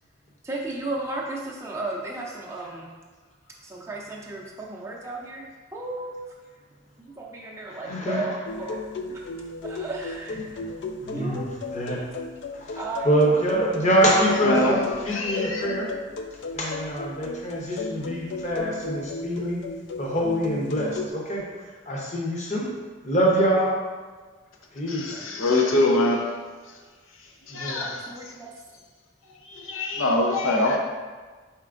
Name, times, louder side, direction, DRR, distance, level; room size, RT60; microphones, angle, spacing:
voice 1, 0.4-2.9 3.6-5.5 5.7-6.2 7.0-9.2 9.6-10.6 11.1-11.6 12.7-13.1 13.5-13.7 25.1-25.5 27.8-28.5, right 2 dB, 15° right, -3 dB, 0.5 m, -35 dB
voice 2, 7.7-8.3 11.0-11.4 11.7-12.0 12.6-12.8 13.0-15.9 16.5-19.6 20.0-21.4 21.9-22.7 23.0-23.7 24.7-25.2 27.5-27.8, right 1 dB, 35° left, -3 dB, 0.7 m, -24 dB
sound 1, 8.5-21.1, left 3 dB, 60° left, 0.3 m, -35 dB
voice 3, 14.4-15.6 24.9-26.2 27.5-27.9 29.5-30.8, left 2 dB, 90° left, 1 dB, 0.6 m, -24 dB
4.4 x 4.2 x 2.5 m, 1.4 s
head